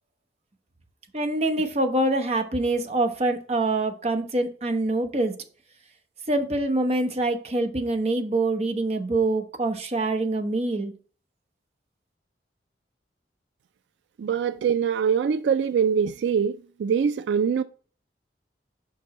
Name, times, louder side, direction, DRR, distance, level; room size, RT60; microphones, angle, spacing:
voice 1, 1.1-5.3 6.3-10.9, right 2 dB, 35° right, 0.8 m, -25 dB
voice 2, 14.2-17.6, right 7 dB, 80° right, 0.3 m, -23 dB
5.3 x 4.8 x 4.1 m
head